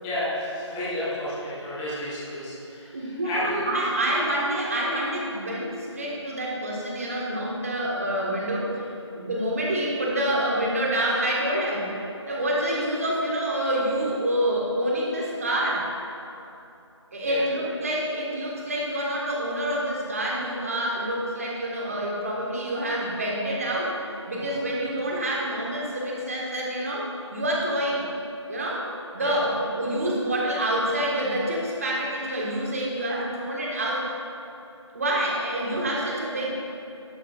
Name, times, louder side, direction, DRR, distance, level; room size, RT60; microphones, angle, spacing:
voice 1, 0.0-3.6 17.2-17.6 24.4-24.6 29.2-29.4, left 1 dB, 5° left, -10 dB, 1.1 m, -32 dB
voice 2, 2.9-8.8 9.1-12.0 12.2-15.8 17.1-23.9 24.3-28.0 28.5-34.1 34.9-36.5, right 1 dB, 30° right, -4 dB, 1.6 m, -27 dB
12.5 x 12.0 x 2.5 m, 2.8 s
figure-of-eight pair, 160°, 15 cm